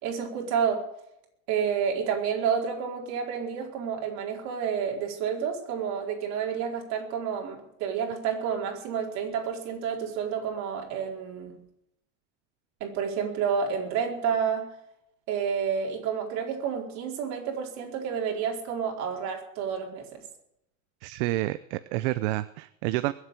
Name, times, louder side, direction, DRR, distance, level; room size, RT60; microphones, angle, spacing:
voice 1, 0.0-0.8 1.5-11.6 12.8-14.7 15.3-20.2, right 7 dB, 45° right, 0 dB, 4.3 m, -30 dB
voice 2, 21.0-23.1, right 17 dB, 60° right, 14 dB, 0.7 m, -29 dB
21.5 x 8.1 x 8.3 m, 0.79 s
supercardioid pair, 155°, 38 cm